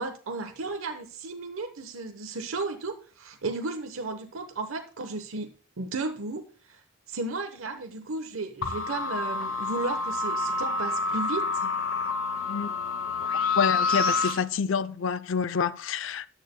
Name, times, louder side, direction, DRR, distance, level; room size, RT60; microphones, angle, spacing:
voice 1, 0.0-6.8 7.1-11.7, right 3 dB, 85° right, 1.0 m, -34 dB
sound 1, 8.6-14.4, left 4 dB, 90° left, 1.6 m, -28 dB
voice 2, 13.6-16.3, left 6 dB, 65° left, 0.5 m, -27 dB
13.5 x 10.5 x 2.2 m
head